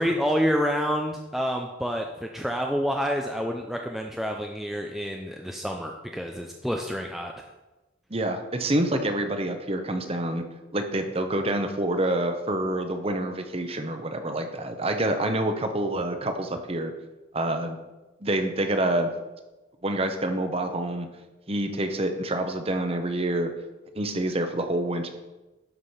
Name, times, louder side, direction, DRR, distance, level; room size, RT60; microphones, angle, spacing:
voice 1, 0.0-7.3, equal, ahead, 2 dB, 0.5 m, -28 dB
voice 2, 8.1-10.4 10.7-16.9 17.3-17.8 18.2-19.1 19.8-21.1 21.5-23.5 23.9-25.1, right 1 dB, 30° right, 6 dB, 0.9 m, -27 dB
12.0 x 5.0 x 5.6 m, 1.1 s
head